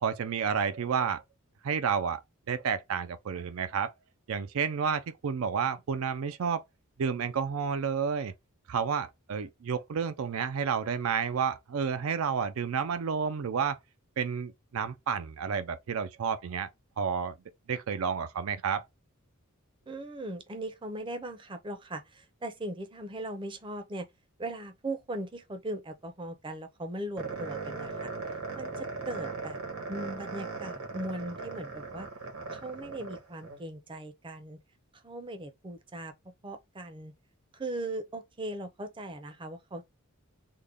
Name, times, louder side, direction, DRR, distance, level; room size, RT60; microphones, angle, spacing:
voice 1, 0.0-1.2 1.6-2.2 2.5-3.9 4.3-6.6 7.0-8.3 8.7-13.8 14.2-16.7 17.0-17.3 17.7-18.8, right 6 dB, 70° right, 0.4 m, -30 dB
voice 2, 19.9-24.0 24.4-28.1 28.5-29.6 29.9-32.1 32.5-34.6 35.0-36.1 36.4-37.1 37.5-39.8, right 1 dB, 25° right, 0.6 m, -39 dB
sound 1, 27.2-33.6, right 4 dB, 85° right, 1.3 m, -38 dB
3.7 x 2.2 x 3.3 m
head